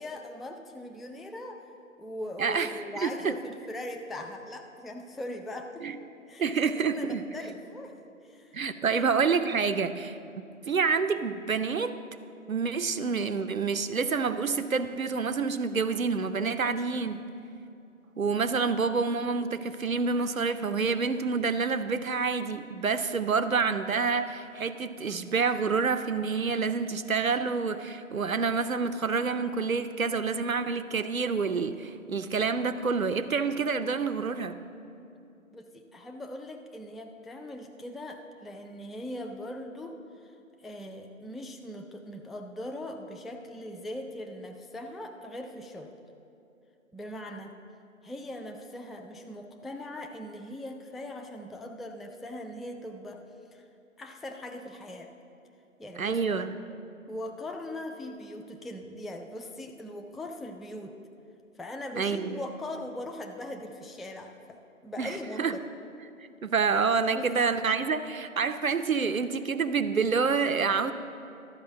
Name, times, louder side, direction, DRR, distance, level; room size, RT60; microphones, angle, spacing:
voice 1, 0.0-1.7 2.0-5.8 6.3-7.9 8.2-9.0 35.5-40.4 40.6-46.0 46.9-47.5 48.0-53.2 53.5-53.6 54.0-55.1 55.8-56.2 57.1-61.0 61.6-65.7 67.1-67.5, left 1 dB, ahead, 3 dB, 0.3 m, -40 dB
voice 2, 2.4-2.7 3.0-3.3 5.8-6.0 6.4-7.2 8.5-11.9 12.5-17.2 18.2-34.6 56.0-56.5 62.0-62.4 65.0-65.5 66.4-70.9, right 5 dB, 80° right, 11 dB, 0.7 m, -28 dB
12.0 x 5.4 x 7.2 m, 2.7 s
figure-of-eight pair, 160°, 41 cm